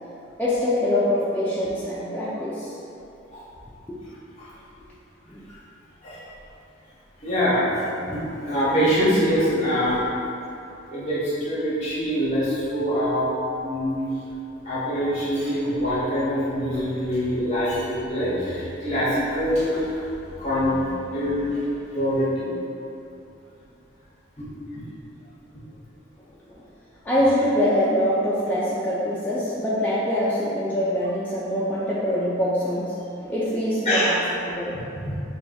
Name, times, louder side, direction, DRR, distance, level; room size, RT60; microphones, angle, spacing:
voice 1, 0.4-2.8 3.9-4.0 5.3-5.4 26.5-26.6 27.0-34.1 34.5-34.7, left 1 dB, 10° left, -10 dB, 0.4 m, -24 dB
voice 2, 7.2-7.7 8.1-10.0 10.9-13.3 13.6-14.1 14.6-20.0 20.4-21.6 21.9-22.5 24.4-24.8 33.8-34.1 35.0-35.1, equal, 40° left, -10 dB, 0.9 m, -24 dB
3.4 x 2.3 x 4.0 m, 2.7 s
head